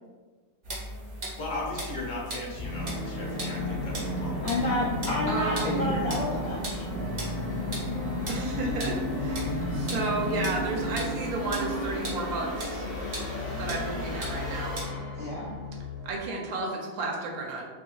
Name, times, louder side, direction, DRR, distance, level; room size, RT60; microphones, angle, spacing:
sound 1, 0.6-14.8, equal, 45° right, 0.8 m, -39 dB
voice 1, 1.4-4.5, left 2 dB, 65° left, -2 dB, 0.9 m, -37 dB
Musical instrument, 2.5-16.2, left 1 dB, 35° left, 0.6 m, -33 dB
voice 2, 4.4-6.8 15.2-15.6, left 1 dB, 90° left, -5 dB, 0.5 m, -30 dB
voice 3, 5.3-5.9 8.3-12.9 13.6-14.8 16.0-17.6, right 3 dB, 75° right, -1 dB, 1.1 m, -32 dB
2.8 x 2.6 x 2.9 m, 1.4 s
omnidirectional pair, 1.7 m